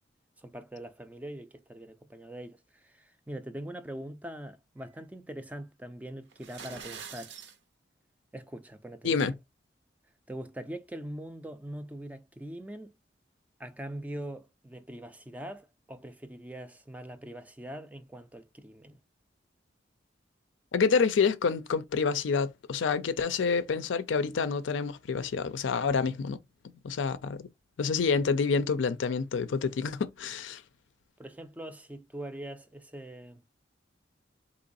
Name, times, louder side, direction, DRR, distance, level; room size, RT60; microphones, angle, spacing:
voice 1, 0.4-7.4 8.3-9.2 10.3-12.9 13.6-19.0 31.2-33.4, right 1 dB, 10° right, 0.3 m, -42 dB
sound 1, 6.3-7.6, right 6 dB, 65° right, 0.6 m, -44 dB
voice 2, 20.7-26.4 26.8-27.5 27.8-30.6, left 5 dB, 80° left, 0.4 m, -28 dB
3.9 x 2.9 x 2.5 m
head